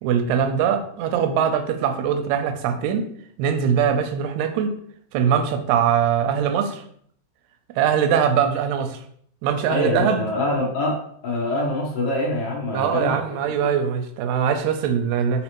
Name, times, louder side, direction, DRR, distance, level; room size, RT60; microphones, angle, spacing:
voice 1, 0.0-3.0 3.4-4.7 5.1-6.8 7.8-9.0 9.4-10.2 12.7-15.4, right 8 dB, 80° right, 6 dB, 1.8 m, -22 dB
voice 2, 9.7-13.4, left 2 dB, 70° left, -3 dB, 1.4 m, -25 dB
4.2 x 3.8 x 2.9 m, 0.64 s
omnidirectional pair, 3.7 m